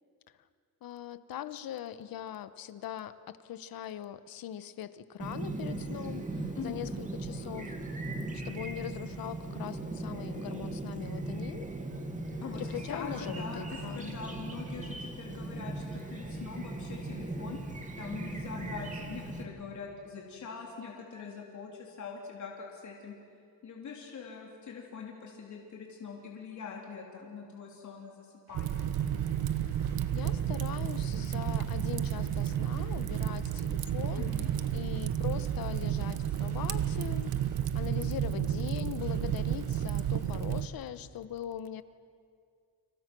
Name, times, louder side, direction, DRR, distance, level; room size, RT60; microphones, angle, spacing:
voice 1, 0.8-7.7 8.3-11.7 12.5-14.1 29.7-34.3 34.7-37.3 37.7-41.8, left 11 dB, 70° left, 13 dB, 1.2 m, -41 dB
Chirp tweet, 5.2-19.4, right 2 dB, 20° right, 2.4 m, -38 dB
voice 2, 6.5-6.8 12.4-17.6 18.0-23.1 23.6-28.9 34.2-34.5, left 6 dB, 55° left, -1 dB, 3.5 m, -43 dB
sound 1, 28.5-40.6, right 3 dB, 60° right, 4.9 m, -56 dB
Fire, 28.5-40.7, right 10 dB, 80° right, 1.1 m, -31 dB
30.0 x 27.0 x 6.2 m, 2.2 s
wide cardioid pair, 180°, 36 cm